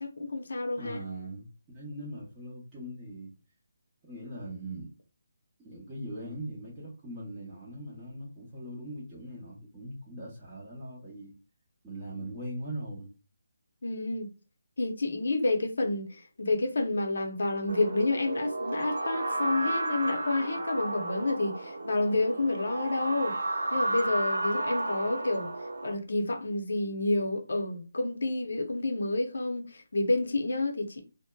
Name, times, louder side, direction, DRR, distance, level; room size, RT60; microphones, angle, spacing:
voice 1, 0.0-1.0 13.8-14.3 14.8-23.3 23.7-25.5 25.8-31.0, left 2 dB, 65° left, 0.7 m, -29 dB
voice 2, 0.8-3.3 4.0-4.9 5.6-11.3 11.8-13.1, right 1 dB, 10° right, 0.7 m, -40 dB
sound 1, 17.7-25.9, right 2 dB, 80° right, 0.7 m, -32 dB
2.7 x 2.1 x 2.2 m
hypercardioid pair, 175°, 0 cm